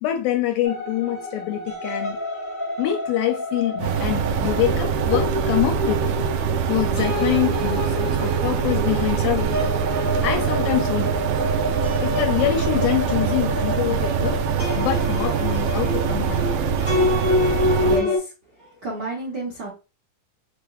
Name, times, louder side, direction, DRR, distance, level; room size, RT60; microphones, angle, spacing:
voice 1, 0.0-2.2 2.8-6.1 6.7-9.6 10.2-11.1 12.0-14.4 14.8-16.7 18.0-18.2, left 13 dB, 80° left, 2.3 m, -25 dB
sound 1, 0.6-18.2, left 1 dB, 10° left, 0.8 m, -27 dB
sound 2, 3.8-18.0, right 7 dB, 90° right, 2.5 m, -24 dB
voice 2, 17.8-18.1 18.8-19.7, right 2 dB, 65° right, 1.0 m, -29 dB
6.4 x 3.3 x 2.5 m
omnidirectional pair, 4.1 m